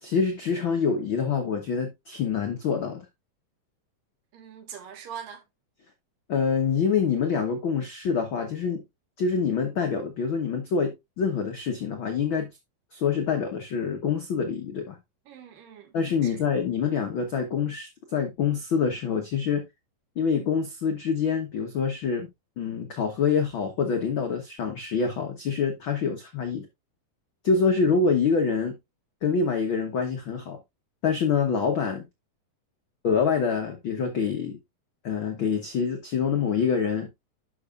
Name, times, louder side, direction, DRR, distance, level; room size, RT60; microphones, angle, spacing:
voice 1, 0.0-3.0 6.3-8.8 9.2-12.5 12.9-15.0 15.9-19.6 20.2-22.3 22.6-26.6 27.4-28.8 29.2-30.6 31.0-32.0 33.0-34.6 35.0-37.1, left 6 dB, 80° left, 1.1 m, -26 dB
voice 2, 4.3-5.4 15.3-15.9 16.2-16.4, right 8 dB, 75° right, 3.2 m, -42 dB
10.5 x 6.2 x 2.4 m
omnidirectional pair, 4.0 m